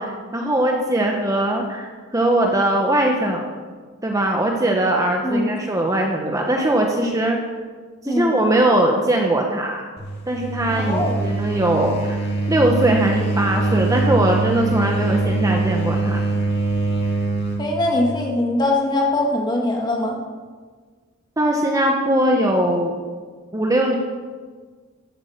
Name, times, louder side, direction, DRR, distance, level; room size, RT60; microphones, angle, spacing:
voice 1, 0.0-3.5 4.0-7.4 8.0-9.8 10.3-12.2 12.5-16.2 21.4-22.9 23.5-23.9, right 1 dB, 15° right, 1 dB, 1.1 m, -20 dB
sound 1, 10.0-17.7, right 3 dB, 50° left, 2.7 m, -23 dB
voice 2, 10.8-11.2 17.6-20.2, left 2 dB, 20° left, 0 dB, 2.0 m, -21 dB
14.0 x 9.0 x 6.6 m, 1.5 s
head